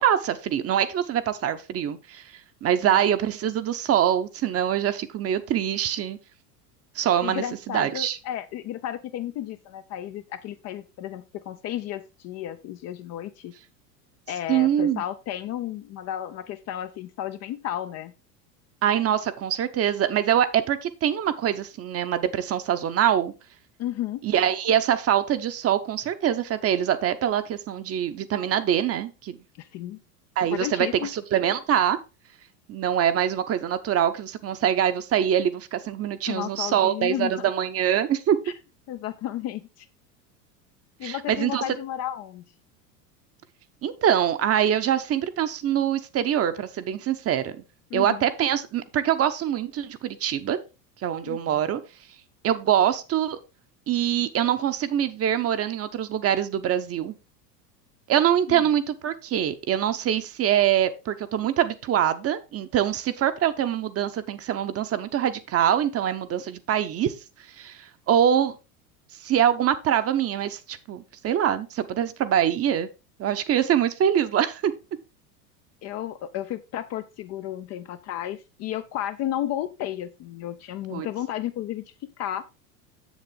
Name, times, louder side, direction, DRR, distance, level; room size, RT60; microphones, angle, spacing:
voice 1, 0.0-2.2 2.6-6.2 6.9-8.2 14.5-15.0 18.8-23.3 24.2-29.4 30.4-32.0 32.7-38.4 41.0-41.6 43.8-47.5 47.9-50.6 51.0-51.8 52.4-53.4 53.9-57.1 58.1-67.1 67.6-68.5 69.2-72.9 73.2-74.7 80.9-81.1, right 10 dB, 30° right, 0.8 m, -24 dB
voice 2, 7.2-13.5 14.3-18.1 23.8-24.2 29.6-30.0 30.5-31.1 36.3-37.5 38.5-38.6 38.9-39.9 41.0-42.4 47.9-48.2 51.3-51.6 58.5-58.6 75.8-82.5, left 12 dB, 35° left, 0.5 m, -33 dB
7.4 x 7.2 x 3.7 m
hypercardioid pair, 90°, 49 cm